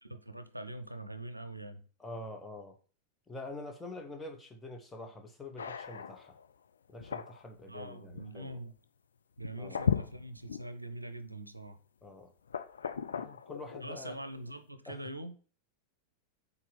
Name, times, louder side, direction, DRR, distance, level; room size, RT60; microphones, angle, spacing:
voice 1, 0.0-1.8 7.7-8.8 9.4-11.8 13.8-15.4, right 1 dB, 85° right, 0.5 m, -43 dB
voice 2, 2.0-2.7 3.3-6.4 6.9-8.6 9.6-9.8 12.0-12.3 13.1-14.1 14.9-15.0, left 2 dB, 10° left, 1.1 m, -45 dB
sound 1, 5.6-6.5 7.0-7.4 8.2-8.3 9.4-10.7 11.3-11.4 12.5-13.9, left 7 dB, 70° left, 0.4 m, -36 dB
5.8 x 4.0 x 5.1 m
figure-of-eight pair, 90°, 0 cm